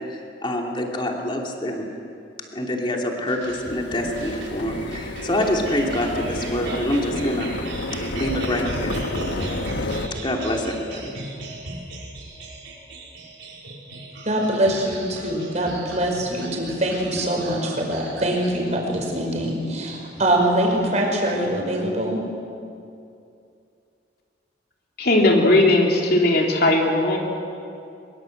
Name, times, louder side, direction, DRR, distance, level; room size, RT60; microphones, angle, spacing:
voice 1, 0.1-1.9 2.5-7.5 8.1-9.0 10.2-11.1, left 1 dB, 25° left, 0 dB, 3.0 m, -26 dB
sound 1, 3.3-21.0, right 2 dB, 90° right, 5.3 m, -38 dB
sound 2, 3.5-10.1, left 1 dB, 75° left, 1.4 m, -30 dB
voice 2, 14.2-22.2, right 1 dB, 40° right, 1 dB, 5.2 m, -23 dB
voice 3, 25.0-27.2, left 2 dB, 55° left, 0 dB, 3.0 m, -18 dB
23.5 x 22.5 x 8.0 m, 2.5 s
head